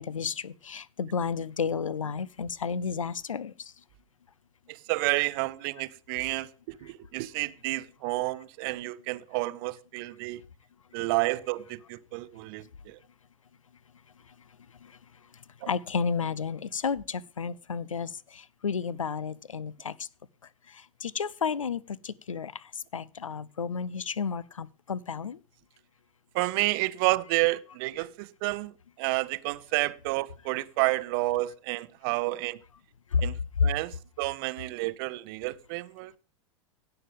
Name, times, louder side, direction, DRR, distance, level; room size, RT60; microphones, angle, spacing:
voice 1, 0.0-3.7 14.8-14.9 15.6-20.1 20.7-25.4 33.1-33.2 33.6-33.7, left 6 dB, 80° left, 0.5 m, -32 dB
voice 2, 4.7-10.4 10.9-13.0 15.6-15.7 26.3-32.6 33.2-36.1, right 21 dB, 45° right, 0.7 m, -30 dB
17.0 x 6.8 x 3.5 m
figure-of-eight pair, 90°, 17 cm